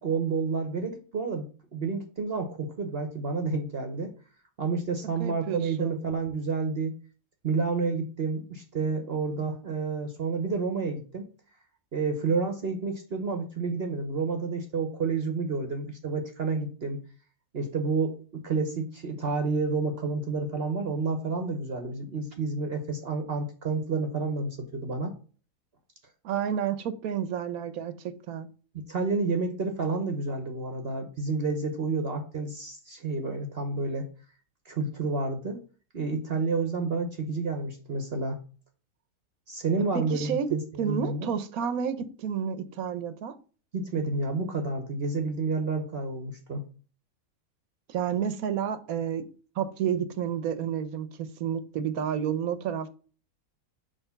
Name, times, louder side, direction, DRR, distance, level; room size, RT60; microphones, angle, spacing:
voice 1, 0.0-4.1 4.6-7.0 7.4-11.2 11.9-17.0 17.5-18.2 18.4-25.1 28.9-34.1 34.7-35.6 35.9-38.4 39.5-41.3 43.7-46.6, right 4 dB, 50° right, 1.0 m, -30 dB
voice 2, 5.2-6.0 26.2-27.9 28.3-28.5 39.9-40.5 40.8-43.3 47.9-49.2 49.6-52.9, right 8 dB, 70° right, 1.1 m, -30 dB
5.8 x 3.4 x 5.6 m
omnidirectional pair, 1.6 m